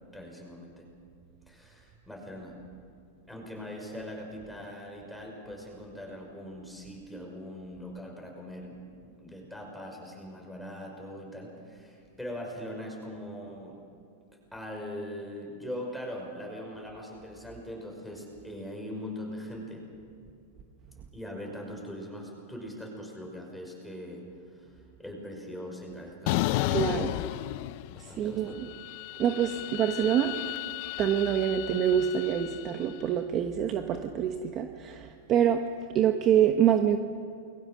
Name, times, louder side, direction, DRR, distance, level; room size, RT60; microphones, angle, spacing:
voice 1, 0.1-0.9 1.5-2.6 3.3-13.8 14.5-19.9 21.1-26.8 27.1-27.3 27.9-28.7, equal, ahead, -1 dB, 5.7 m, -41 dB
sound 1, 26.3-28.2 28.5-32.8, left 18 dB, 50° left, 0.5 m, -33 dB
voice 2, 26.7-27.1 28.0-28.7 29.2-30.3 31.0-35.6 35.9-37.0, right 9 dB, 30° right, 5 dB, 1.2 m, -26 dB
29.0 x 22.0 x 6.6 m, 2.4 s
supercardioid pair, 150°, 0 cm